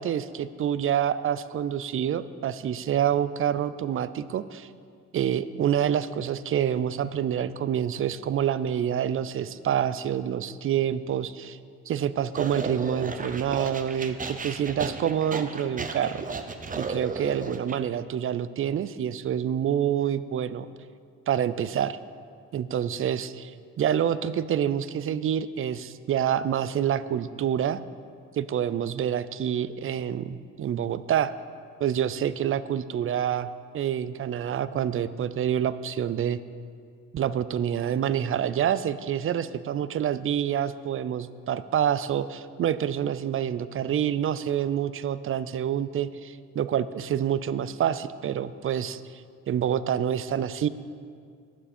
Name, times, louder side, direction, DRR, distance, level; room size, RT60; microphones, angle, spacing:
voice 1, 0.0-4.7 5.1-11.6 11.9-16.2 16.8-20.7 21.3-22.0 22.5-23.5 23.8-27.8 28.3-31.3 31.8-33.5 33.7-36.4 37.1-49.0 49.5-50.7, right 9 dB, 45° right, 15 dB, 0.4 m, -27 dB
sound 1, 12.3-17.8, right 4 dB, 25° right, 0.8 m, -34 dB
12.0 x 10.0 x 4.3 m, 2.2 s
cardioid pair, 90°, 30 cm